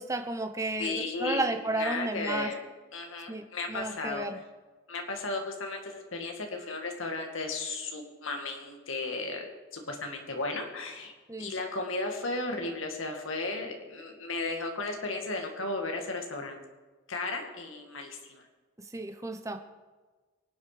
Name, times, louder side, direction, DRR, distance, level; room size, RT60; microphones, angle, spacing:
voice 1, 0.0-2.5 3.3-3.4 3.7-4.4 11.3-11.5 18.9-19.6, right 2 dB, 15° right, 6 dB, 0.9 m, -32 dB
voice 2, 0.8-2.6 2.9-4.3 4.9-9.5 9.7-11.1 11.4-16.6 17.1-18.4, left 3 dB, 75° left, 3 dB, 2.3 m, -35 dB
23.5 x 8.2 x 5.1 m, 1.3 s
head